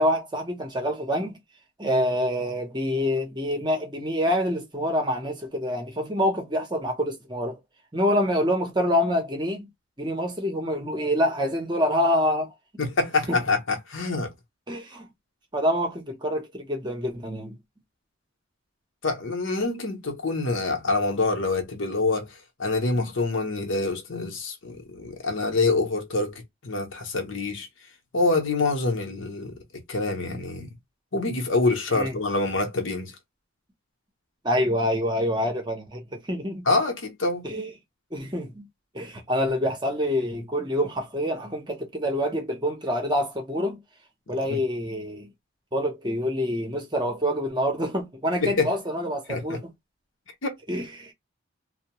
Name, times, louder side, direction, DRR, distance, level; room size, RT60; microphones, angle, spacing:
voice 1, 0.0-1.4 1.8-7.6 7.9-9.7 10.0-12.5 13.3-13.4 14.7-15.1 15.5-17.6 23.0-23.1 31.9-32.1 34.4-36.7 37.4-37.7 38.1-38.7 38.9-43.8 44.3-45.3 45.7-49.7 50.7-51.1, equal, 20° right, 0.7 m, -26 dB
voice 2, 12.8-14.3 19.0-27.7 28.1-30.7 31.1-33.1 36.7-37.5 44.5-44.6 48.4-48.7 49.3-49.6 50.4-50.6, left 3 dB, 65° left, 0.8 m, -26 dB
2.7 x 2.0 x 2.9 m
head